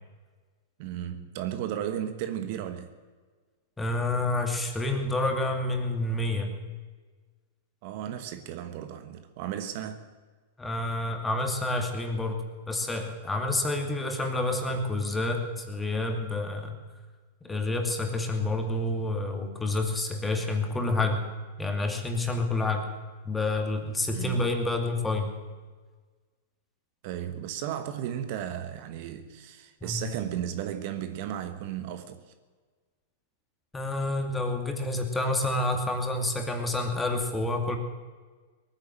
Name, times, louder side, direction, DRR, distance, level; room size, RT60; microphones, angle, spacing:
voice 1, 0.8-2.9 7.8-10.0 24.1-24.4 27.0-32.3, right 10 dB, 55° right, 1.2 m, -34 dB
voice 2, 3.8-6.5 10.6-16.7 17.4-21.3 21.6-22.9 23.2-25.3 29.8-30.0 33.7-37.8, left 2 dB, 10° left, 2.3 m, -28 dB
19.0 x 9.6 x 7.6 m
hypercardioid pair, 115°, 0 cm